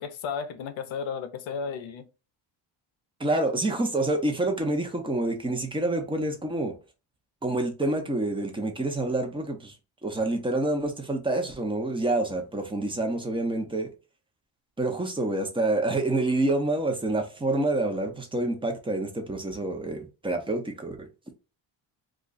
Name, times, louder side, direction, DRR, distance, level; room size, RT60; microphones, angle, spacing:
voice 1, 0.0-2.1, left 6 dB, 70° left, 0.7 m, -33 dB
voice 2, 3.2-6.7 7.4-9.8 10.0-13.9 14.8-21.1, right 2 dB, 10° right, 0.7 m, -27 dB
2.5 x 2.3 x 3.9 m
cardioid pair, 100°, 49 cm